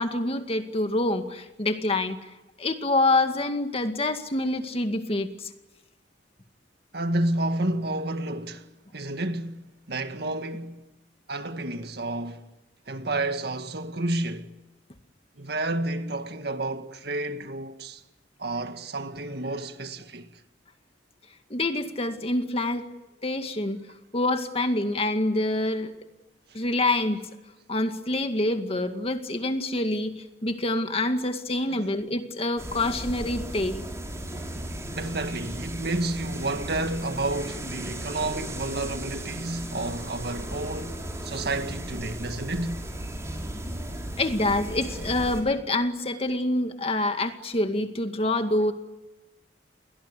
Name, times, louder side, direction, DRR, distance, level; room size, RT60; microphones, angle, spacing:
voice 1, 0.0-2.2 2.6-5.5 21.5-22.9 23.2-23.8 24.1-25.9 26.5-27.2 27.7-33.8 44.2-48.7, left 2 dB, 35° left, 2.1 m, -26 dB
voice 2, 6.9-10.8 11.3-12.4 12.9-14.5 15.4-18.0 18.4-20.3 31.7-31.8 34.9-42.9, right 2 dB, 65° right, 2.0 m, -30 dB
sound 1, 32.6-45.4, right 1 dB, 15° right, 6.0 m, -36 dB
30.0 x 22.5 x 8.4 m
head